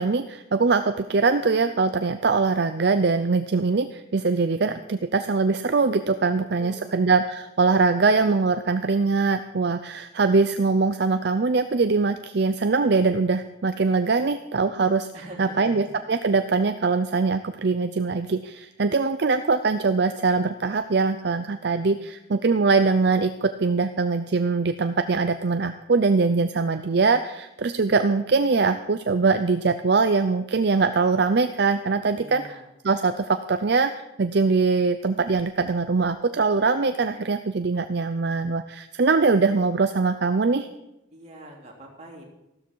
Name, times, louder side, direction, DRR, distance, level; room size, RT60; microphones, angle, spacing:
voice 1, 0.0-15.1 15.4-32.4 32.8-40.7, right 4 dB, 55° right, 9 dB, 0.5 m, -22 dB
voice 2, 6.3-7.0 15.1-15.9 32.1-32.6 41.1-42.2, right 1 dB, 35° right, -2 dB, 3.2 m, -43 dB
14.5 x 13.0 x 4.7 m, 0.89 s
head